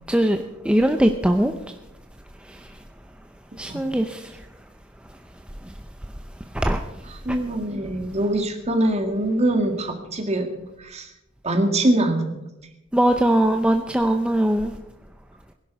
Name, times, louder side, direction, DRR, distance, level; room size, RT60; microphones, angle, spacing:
voice 1, 0.1-0.4 0.6-1.5 3.6-4.3 6.5-6.8 12.9-14.7, right 1 dB, 5° right, 0.7 m, -20 dB
voice 2, 7.1-10.5 10.8-11.1 11.4-12.4, right 1 dB, 35° right, 2.1 m, -23 dB
20.5 x 11.5 x 4.8 m
head